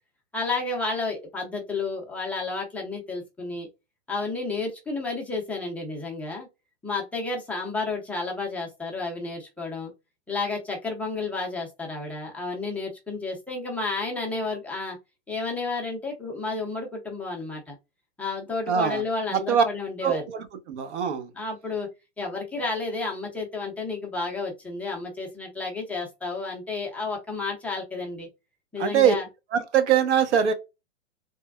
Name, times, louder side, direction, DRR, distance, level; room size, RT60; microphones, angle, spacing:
voice 1, 0.3-3.7 4.1-6.5 6.8-9.9 10.3-15.0 15.3-17.7 18.2-20.3 21.4-21.9 22.2-28.3 28.7-29.3, left 3 dB, 5° left, 0.5 m, -31 dB
voice 2, 18.7-19.0 19.3-19.6 20.0-21.3 28.8-29.1 29.5-30.5, right 8 dB, 70° right, 0.9 m, -22 dB
3.3 x 2.1 x 2.2 m
hypercardioid pair, 140°, 36 cm